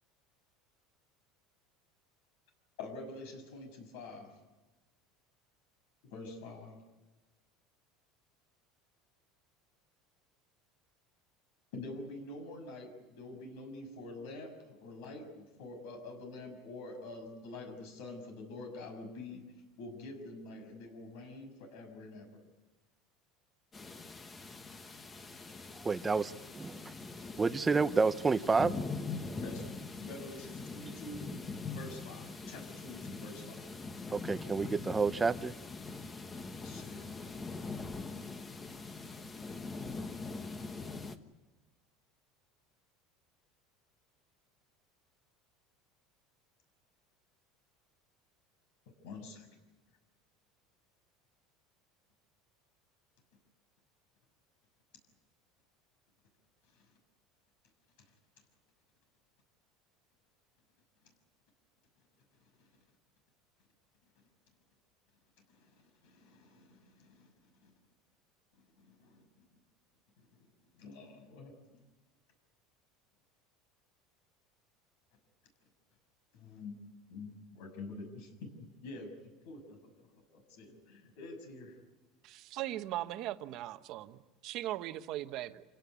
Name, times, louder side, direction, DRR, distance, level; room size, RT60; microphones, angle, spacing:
voice 1, 2.8-4.4 6.1-6.8 11.7-19.5 19.8-22.4 29.3-31.3 31.7-33.7 36.6-37.0 49.0-49.5 56.7-56.8 62.4-62.7 65.5-67.3 67.6-67.7 68.6-69.3 70.2-71.8 76.3-76.8 77.1-81.8, left 2 dB, 70° left, 6.4 m, -47 dB
sound 1, 23.7-41.2, left 4 dB, 15° left, 1.2 m, -43 dB
voice 2, 25.8-26.9 27.4-28.8 30.8-30.9 34.1-35.5, right 4 dB, 15° right, 0.7 m, -30 dB
voice 3, 82.2-85.6, right 14 dB, 45° right, 1.1 m, -39 dB
27.0 x 17.5 x 9.6 m
cardioid pair, 165°, 0 cm